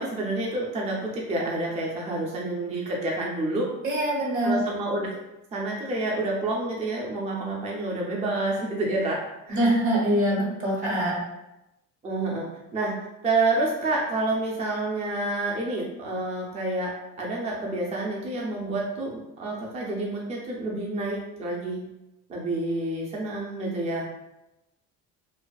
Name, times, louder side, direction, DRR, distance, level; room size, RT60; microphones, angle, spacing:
voice 1, 0.0-3.7 4.4-5.1 5.5-9.6 12.0-12.5 12.7-21.8 22.3-24.0, right 2 dB, 20° right, -2 dB, 0.4 m, -28 dB
voice 2, 3.8-4.5 9.5-11.1, right 1 dB, 45° right, -4 dB, 1.1 m, -24 dB
2.4 x 2.3 x 2.2 m, 0.94 s
cardioid pair, 125°, 31 cm